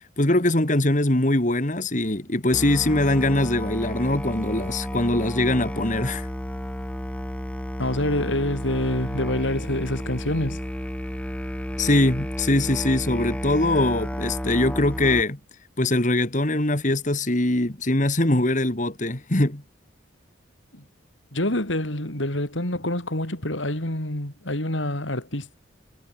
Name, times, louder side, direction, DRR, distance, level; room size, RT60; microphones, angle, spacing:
voice 1, 0.2-6.3 11.8-15.4 15.8-19.6, left 1 dB, 40° left, 2.3 m, -22 dB
Musical instrument, 2.5-15.2, equal, 5° left, 4.4 m, -32 dB
voice 2, 7.8-10.6 20.7-20.8 21.3-25.6, left 1 dB, 85° left, 5.6 m, -26 dB
head